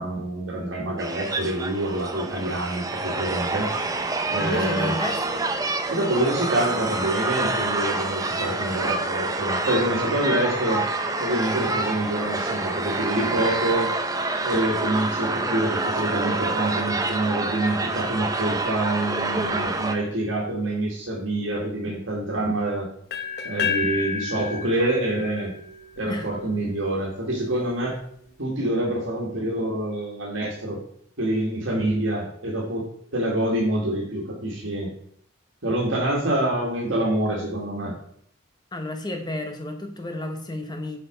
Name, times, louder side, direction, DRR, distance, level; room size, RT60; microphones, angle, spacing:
voice 1, 0.0-3.9 4.3-5.0 5.9-10.9 11.2-13.9 14.4-22.9 23.4-25.5 26.0-28.0 28.4-30.8 31.2-32.9 33.1-34.9 35.6-38.0, right 1 dB, 80° right, -3 dB, 2.1 m, -26 dB
sound 1, 1.0-19.9, right 2 dB, 20° right, 0.5 m, -27 dB
voice 2, 4.4-5.5 26.1-26.3 38.7-41.0, left 1 dB, 20° left, 5 dB, 1.0 m, -31 dB
sound 2, 23.1-27.0, left 6 dB, 50° left, 0.9 m, -31 dB
8.0 x 5.1 x 5.2 m, 0.64 s
head